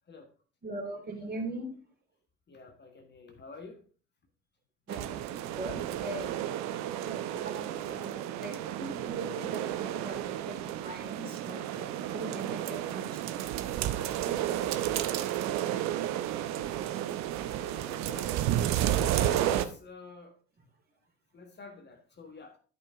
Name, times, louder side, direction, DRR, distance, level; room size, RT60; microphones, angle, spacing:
voice 1, 0.6-1.7 4.9-5.2 5.6-6.4 7.1-11.9 12.1-13.6 14.2-14.3, right 2 dB, 30° right, 3.4 m, -41 dB
voice 2, 2.5-3.8 6.9-7.0 14.6-14.8 15.2-15.9 17.3-18.5 19.1-20.4 21.3-22.6, left 3 dB, 30° left, 1.5 m, -49 dB
sound 1, 4.9-19.7, right 12 dB, 55° right, 0.8 m, -32 dB
11.5 x 5.4 x 3.6 m
figure-of-eight pair, 55°, 34 cm